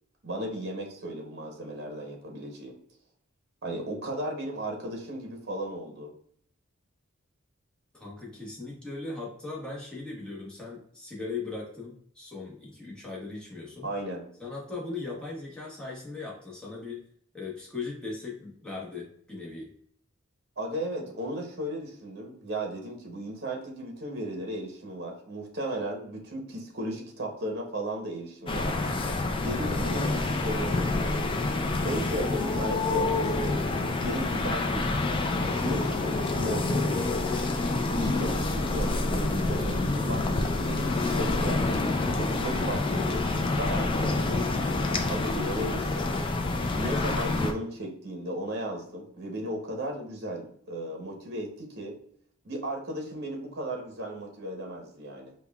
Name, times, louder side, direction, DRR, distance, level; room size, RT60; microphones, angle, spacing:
voice 1, 0.2-2.8 3.6-6.1 13.8-14.2 20.6-28.9 29.4-31.2 31.8-33.7 34.0-35.0 35.5-36.9 37.4-37.5 37.9-44.4 45.1-46.1 46.7-52.0 52.4-55.3, right 1 dB, 55° right, 1 dB, 0.8 m, -35 dB
voice 2, 7.9-13.9 14.4-17.1 17.3-19.7, left 3 dB, 5° left, -4 dB, 0.9 m, -38 dB
sound 1, 28.5-47.5, left 2 dB, 25° left, 0.3 m, -27 dB
5.3 x 2.2 x 2.2 m, 0.63 s
head